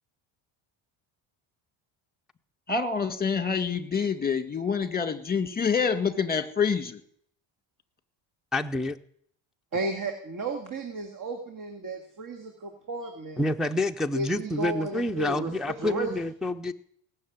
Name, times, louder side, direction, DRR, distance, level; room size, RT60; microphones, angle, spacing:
voice 1, 2.7-7.0, left 6 dB, 20° left, 10 dB, 1.7 m, -27 dB
voice 2, 8.5-9.0 13.4-16.7, left 1 dB, ahead, 4 dB, 0.6 m, -28 dB
voice 3, 9.7-13.4 14.1-16.1, right 2 dB, 40° right, 4 dB, 2.2 m, -33 dB
19.0 x 6.7 x 9.4 m, 0.64 s
cardioid pair, 105°, 48 cm